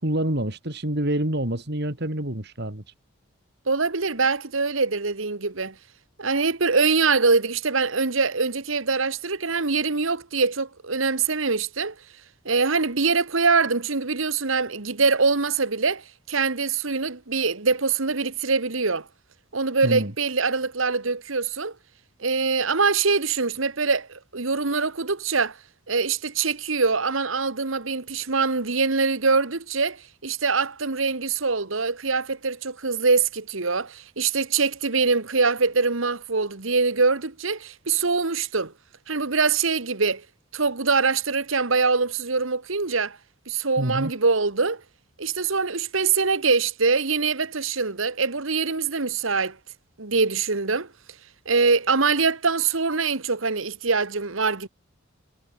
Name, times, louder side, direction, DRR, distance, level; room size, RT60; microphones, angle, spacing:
voice 1, 0.0-2.8 19.8-20.1 43.8-44.1, right 1 dB, 50° right, 3.0 m, -27 dB
voice 2, 3.7-5.7 6.2-11.9 12.4-19.1 19.5-21.7 22.2-25.6 25.9-38.7 39.1-40.2 40.5-43.2 43.5-44.8 45.2-49.6 50.0-50.9 51.4-54.7, right 4 dB, 70° right, 1.6 m, -23 dB
head